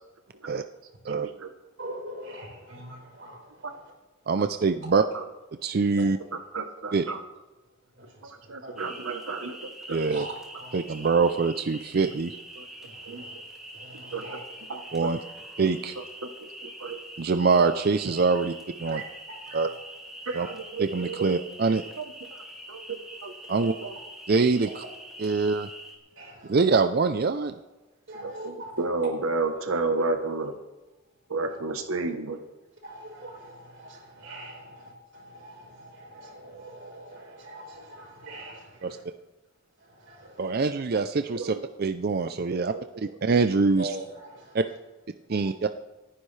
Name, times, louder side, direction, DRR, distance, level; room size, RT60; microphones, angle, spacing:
voice 1, 1.1-1.5 3.6-3.7 5.1-5.2 6.5-7.2 8.5-10.1 12.6-12.7 13.1-13.2 13.9-14.3 14.7-15.1 16.0-16.3 16.6-17.0 20.3-21.3 22.0-22.1 22.7-23.9 28.2-30.5 31.3-32.4 41.3-41.5 42.5-42.8, right 3 dB, 80° right, 6 dB, 1.0 m, -32 dB
voice 2, 1.8-3.9 4.4-4.5 6.0-6.1 8.0-8.8 10.1-10.8 12.8-13.4 13.7-14.4 18.8-19.0 19.5-19.7 20.2-20.5 25.2-25.4 26.2-26.6 28.1-28.8 32.8-39.0 39.8-40.6 43.8-44.6 45.3-45.5, right 1 dB, 65° right, -1 dB, 4.8 m, -42 dB
voice 3, 4.3-5.0 5.6-6.2 6.9-7.0 9.9-10.3 10.7-12.3 14.9-15.2 15.6-15.9 17.2-18.5 18.8-19.0 19.5-19.7 20.3-20.5 20.8-21.8 23.5-23.7 24.3-24.8 25.2-25.7 26.5-27.5 38.8-39.0 40.4-43.9 44.5-44.6 45.3-45.7, right 4 dB, 45° right, 9 dB, 0.4 m, -24 dB
sound 1, 8.8-26.0, right 1 dB, ahead, 2.4 m, -44 dB
27.5 x 10.0 x 3.3 m, 1.2 s
head